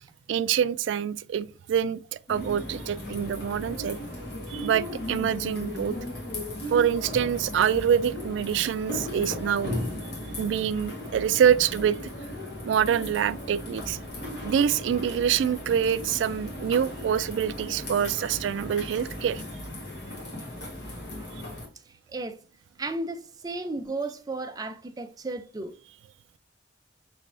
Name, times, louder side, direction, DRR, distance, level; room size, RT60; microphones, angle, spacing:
voice 1, 0.3-4.0 4.5-5.9 6.7-9.8 10.4-12.0 12.6-14.0 14.4-19.4, right 8 dB, 85° right, 0.3 m, -25 dB
sound 1, 2.3-21.7, left 1 dB, 60° left, 1.5 m, -36 dB
voice 2, 20.8-21.4 22.1-22.3 22.8-25.7, right 2 dB, 20° right, 0.4 m, -34 dB
6.0 x 3.3 x 2.5 m
head